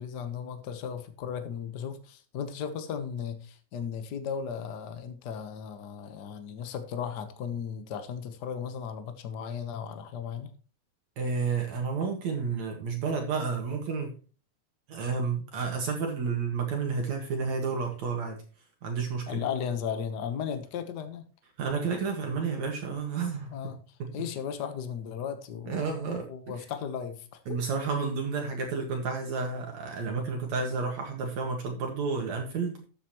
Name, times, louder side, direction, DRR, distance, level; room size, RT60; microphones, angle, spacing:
voice 1, 0.0-10.5 19.3-21.3 23.5-23.8 24.1-26.0 26.3-27.6, left 7 dB, 85° left, 8 dB, 0.9 m, -36 dB
voice 2, 11.2-14.1 14.9-18.4 18.8-19.4 21.6-23.7 24.0-24.1 25.7-26.7 27.5-32.8, right 5 dB, 65° right, 2 dB, 2.9 m, -31 dB
13.0 x 8.2 x 3.0 m, 0.36 s
omnidirectional pair, 3.6 m